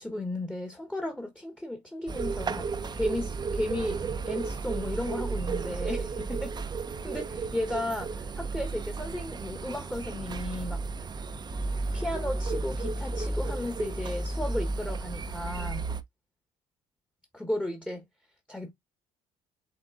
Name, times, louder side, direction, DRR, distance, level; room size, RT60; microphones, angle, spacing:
voice 1, 0.0-6.5 7.0-10.8 11.9-15.8 17.3-18.0 18.5-18.7, left 1 dB, 5° left, 1.3 m, -34 dB
sound 1, 2.1-16.0, right 4 dB, 30° right, 0.7 m, -33 dB
6.0 x 3.5 x 2.5 m
supercardioid pair, 85°, 14 cm